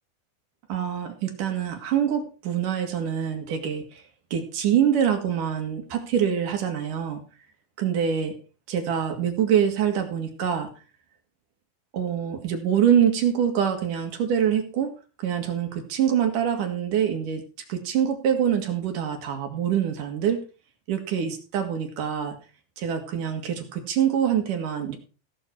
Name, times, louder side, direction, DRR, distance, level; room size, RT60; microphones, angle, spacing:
voice 1, 0.7-4.0 4.3-7.2 7.8-8.4 8.7-10.7 11.9-14.9 15.2-17.4 17.7-20.4 20.9-22.4 22.8-25.0, right 8 dB, 55° right, 4 dB, 3.1 m, -25 dB
17.0 x 6.5 x 4.6 m, 0.34 s
omnidirectional pair, 4.9 m